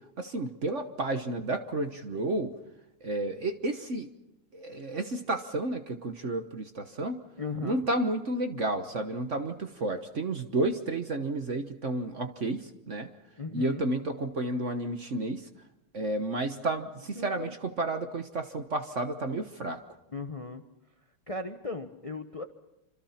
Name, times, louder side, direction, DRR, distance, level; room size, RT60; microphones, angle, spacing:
voice 1, 0.2-2.5 3.0-4.1 4.5-7.2 7.6-13.1 13.5-15.5 15.9-19.8, right 2 dB, 40° right, 7 dB, 1.2 m, -31 dB
voice 2, 7.4-7.8 13.4-13.8 17.1-17.5 20.1-20.6 21.3-22.4, left 3 dB, 30° left, 7 dB, 0.6 m, -37 dB
26.5 x 26.0 x 5.8 m, 0.88 s
omnidirectional pair, 2.4 m